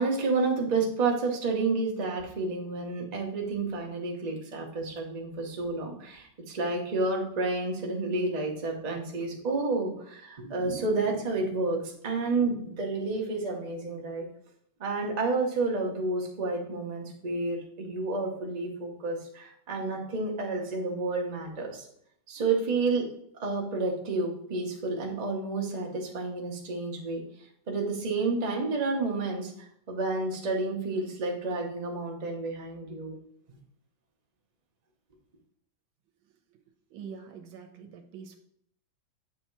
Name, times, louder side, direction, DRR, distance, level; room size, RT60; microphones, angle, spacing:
voice 1, 0.0-14.2 14.8-21.9 22.3-23.1 23.4-27.2 27.7-33.2, right 3 dB, 35° right, 0 dB, 0.7 m, -30 dB
voice 2, 36.9-38.4, right 6 dB, 85° right, 5 dB, 1.5 m, -44 dB
7.5 x 2.8 x 4.5 m, 0.68 s
omnidirectional pair, 2.1 m